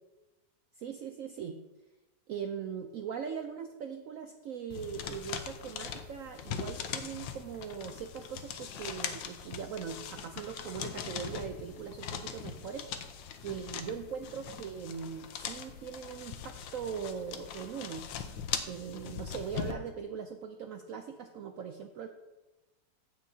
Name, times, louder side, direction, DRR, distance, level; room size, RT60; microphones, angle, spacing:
voice 1, 0.8-1.6 2.3-12.9 13.4-18.4 18.7-22.1, right 7 dB, 85° right, 6 dB, 0.7 m, -40 dB
sound 1, 4.7-19.7, left 8 dB, 90° left, 1.4 m, -41 dB
15.0 x 6.3 x 2.7 m, 1.1 s
omnidirectional pair, 2.0 m